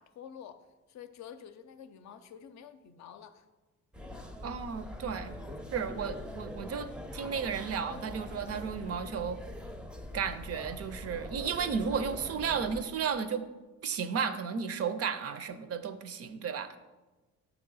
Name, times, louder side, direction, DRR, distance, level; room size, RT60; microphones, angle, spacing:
voice 1, 0.0-3.5, left 8 dB, 65° left, 10 dB, 0.5 m, -49 dB
sound 1, 3.9-12.8, left 1 dB, 5° right, 0.5 m, -43 dB
voice 2, 4.4-5.4 5.7-9.4 10.1-13.5 13.8-16.8, right 6 dB, 55° right, 11 dB, 0.5 m, -33 dB
6.0 x 2.9 x 5.4 m, 1.2 s
cardioid pair, 90°, 30 cm